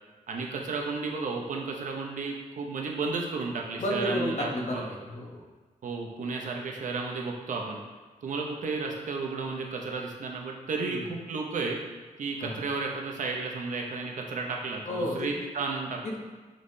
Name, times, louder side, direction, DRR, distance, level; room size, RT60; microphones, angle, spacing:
voice 1, 0.3-4.9 5.8-7.8 8.2-11.8 12.2-16.0, right 4 dB, 65° right, 0 dB, 0.6 m, -33 dB
voice 2, 3.8-5.4 10.7-11.1 12.4-12.6 14.9-15.3 16.0-16.2, left 1 dB, 55° left, 0 dB, 0.7 m, -32 dB
5.2 x 3.1 x 2.7 m, 1.4 s
wide cardioid pair, 130°, 14 cm